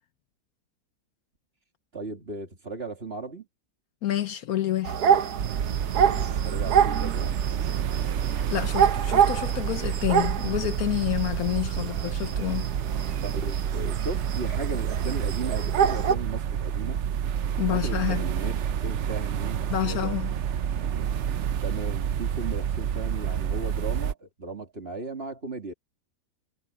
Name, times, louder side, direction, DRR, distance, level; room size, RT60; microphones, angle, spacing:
voice 1, 1.9-3.5 6.1-7.3 11.8-11.9 13.2-17.0 17.7-20.2 21.6-25.7, right 3 dB, 35° right, 2.8 m, -36 dB
voice 2, 4.0-5.0 8.3-12.7 17.6-18.3 19.7-20.3, left 13 dB, 65° left, 1.2 m, -29 dB
sound 1, 4.8-16.2, right 8 dB, 70° right, 1.4 m, -27 dB
sound 2, 5.4-24.1, right 8 dB, 55° right, 0.8 m, -29 dB
omnidirectional pair, 1.7 m